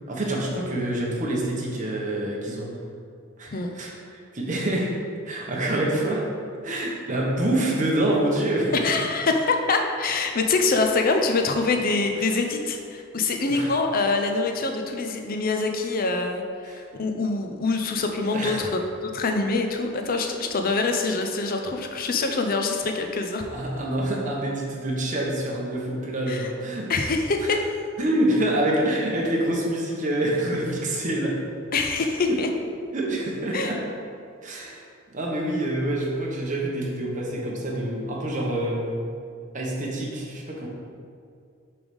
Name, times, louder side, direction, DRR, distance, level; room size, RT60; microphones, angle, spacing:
voice 1, 0.1-2.7 3.4-3.5 3.7-4.9 5.2-6.2 6.6-8.7 13.5-13.7 16.6-16.8 18.3-18.6 23.5-26.9 28.0-31.3 32.9-33.8 34.4-34.8 35.1-39.1 39.5-40.7, right 1 dB, 40° right, -3 dB, 1.1 m, -26 dB
voice 2, 8.8-23.5 26.3-26.5 26.9-27.6 31.7-32.5 33.5-33.7, left 3 dB, 45° left, 4 dB, 0.6 m, -25 dB
7.0 x 3.4 x 5.3 m, 2.3 s
head